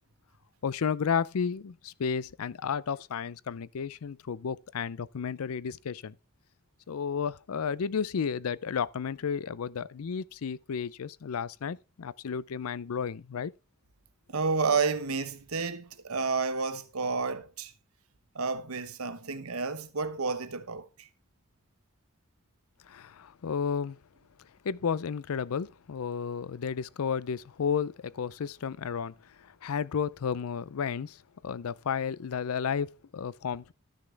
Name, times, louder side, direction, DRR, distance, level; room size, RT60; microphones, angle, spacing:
voice 1, 0.6-6.1 6.9-13.5 22.9-24.0 24.6-29.1 29.4-31.2 31.4-33.7, left 6 dB, 75° left, 0.5 m, -32 dB
voice 2, 14.3-17.7 18.3-21.1, right 4 dB, 75° right, 1.0 m, -30 dB
13.0 x 6.5 x 3.4 m
head